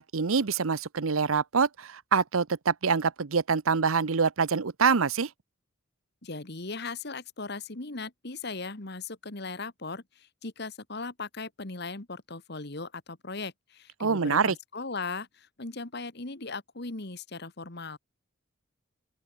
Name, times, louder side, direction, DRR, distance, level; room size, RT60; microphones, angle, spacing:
voice 1, 0.0-5.3 14.0-14.5, right 5 dB, 85° right, 0.8 m, -25 dB
voice 2, 6.2-18.0, left 3 dB, 50° left, 1.8 m, -38 dB
open air
head